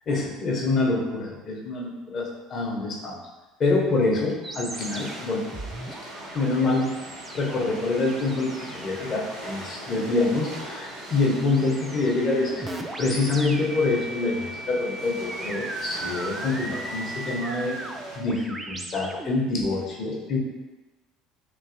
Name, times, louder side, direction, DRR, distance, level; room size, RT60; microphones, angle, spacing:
voice 1, 0.1-3.2 3.6-5.4 6.3-6.9 7.3-17.8 18.1-20.4, left 3 dB, 45° left, -1 dB, 0.8 m, -26 dB
sound 1, 4.4-19.7, right 2 dB, 20° right, 0.3 m, -38 dB
sound 2, 4.7-18.2, right 1 dB, 70° right, 0.9 m, -41 dB
3.1 x 2.7 x 2.6 m, 1.1 s
hypercardioid pair, 65°, 0 cm